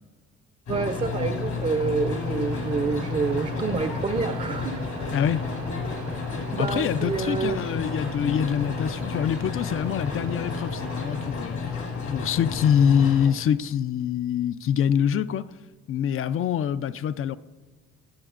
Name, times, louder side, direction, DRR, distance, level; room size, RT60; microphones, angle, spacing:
sound 1, 0.7-13.3, left 4 dB, 75° left, 2.5 m, -31 dB
voice 1, 0.7-4.8 6.5-7.6, right 5 dB, 25° right, 0.5 m, -27 dB
Waves surf, 1.4-11.3, right 6 dB, 70° right, 0.8 m, -41 dB
voice 2, 5.1-5.4 6.6-11.6 12.1-15.4 15.9-17.4, left 8 dB, 45° left, 0.4 m, -25 dB
18.0 x 6.9 x 2.5 m
cardioid pair, 90°, 30 cm